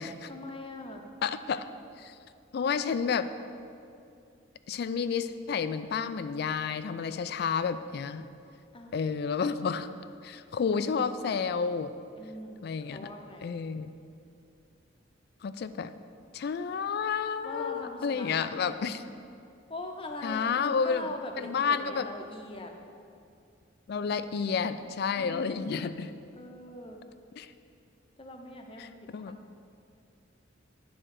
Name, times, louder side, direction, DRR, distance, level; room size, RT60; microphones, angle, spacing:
voice 1, 0.3-1.0 8.7-9.0 12.2-13.5 17.4-18.8 19.7-22.7 25.1-25.9 26.3-27.0 28.2-29.5, left 2 dB, 30° left, 3 dB, 0.7 m, -42 dB
voice 2, 1.2-1.7 2.0-2.1 2.5-3.3 4.7-8.3 8.9-9.9 10.2-11.9 12.6-13.1 13.4-13.9 15.4-15.9 16.3-19.0 20.2-21.1 21.4-22.1 23.9-26.1 27.4-27.5 28.8-29.4, left 6 dB, 55° left, 12 dB, 0.3 m, -30 dB
9.0 x 4.3 x 6.4 m, 2.5 s
head